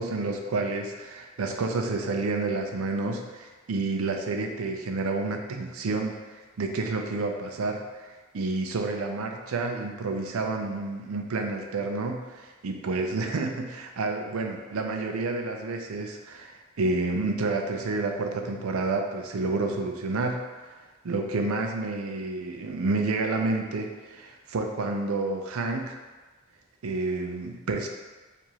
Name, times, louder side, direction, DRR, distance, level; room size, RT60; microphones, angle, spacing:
voice 1, 0.0-7.8 8.3-20.4 21.0-26.0 26.8-27.9, right 3 dB, 85° right, 4 dB, 0.5 m, -29 dB
4.7 x 2.5 x 2.8 m, 1.3 s
head